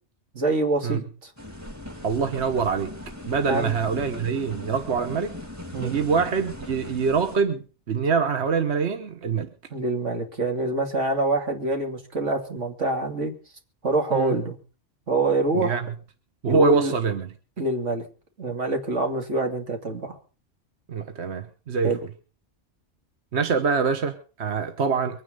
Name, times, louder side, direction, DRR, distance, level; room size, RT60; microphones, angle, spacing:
voice 1, 0.3-1.3 3.5-3.8 5.7-6.0 9.7-13.3 13.8-14.6 15.1-15.8 16.5-16.9 17.6-18.1 18.4-20.2 21.8-22.0, right 2 dB, 85° right, 3.0 m, -25 dB
sound 1, 1.4-7.4, left 1 dB, 15° right, 2.0 m, -39 dB
voice 2, 2.0-3.0 3.3-5.3 5.8-9.5 14.1-14.4 15.5-15.9 16.4-17.3 20.9-21.9 23.3-25.2, right 5 dB, 65° right, 1.4 m, -24 dB
23.5 x 9.7 x 5.4 m
omnidirectional pair, 1.2 m